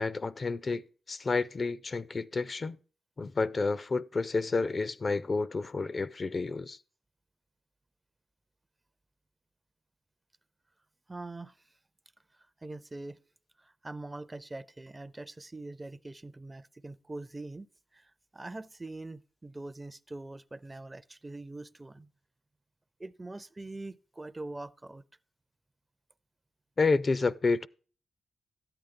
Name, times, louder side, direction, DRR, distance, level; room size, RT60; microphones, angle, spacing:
voice 1, 0.0-2.8 3.2-6.8 26.8-27.7, left 4 dB, 40° left, 0.4 m, -30 dB
voice 2, 11.1-11.6 12.3-13.2 13.6-17.7 17.9-22.1 23.0-25.0, right 2 dB, 20° right, 0.4 m, -43 dB
12.5 x 8.8 x 3.7 m
cardioid pair, 70°, 0 cm